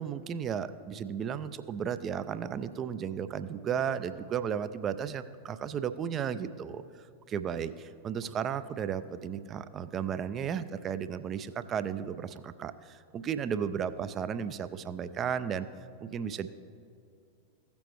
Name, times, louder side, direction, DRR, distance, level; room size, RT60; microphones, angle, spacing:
voice 1, 0.0-6.8 7.3-15.7 16.0-16.5, right 8 dB, 30° right, 13 dB, 0.4 m, -34 dB
16.5 x 7.0 x 3.1 m, 2.4 s
figure-of-eight pair, 90°, 0 cm